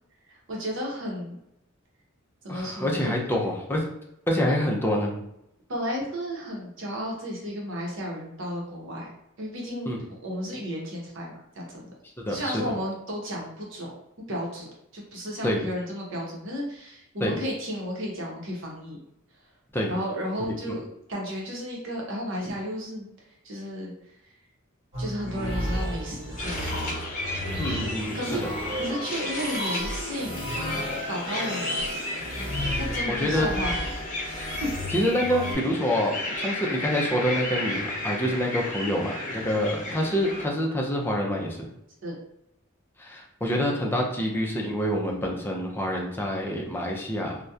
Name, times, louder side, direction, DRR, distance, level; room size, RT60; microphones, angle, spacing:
voice 1, 0.3-1.3 2.4-3.1 4.4-4.6 5.7-9.1 9.4-11.9 12.3-13.9 14.3-19.0 19.9-23.1 23.4-23.9 25.0-26.9 28.1-28.4 28.8-30.4 31.1-31.8 32.8-34.7 42.0-42.2, equal, 65° right, -2 dB, 0.8 m, -33 dB
voice 2, 2.5-3.8 4.3-5.2 9.9-10.0 12.3-12.6 15.4-15.6 17.2-17.4 19.7-19.9 20.5-20.8 27.6-28.2 33.1-33.5 34.9-41.7 43.0-47.3, equal, 10° left, -1 dB, 0.4 m, -27 dB
sound 1, 24.9-35.6, equal, 30° right, 1.3 m, -33 dB
sound 2, 26.4-40.5, left 2 dB, 40° left, 0.8 m, -33 dB
2.7 x 2.1 x 2.3 m, 0.82 s
head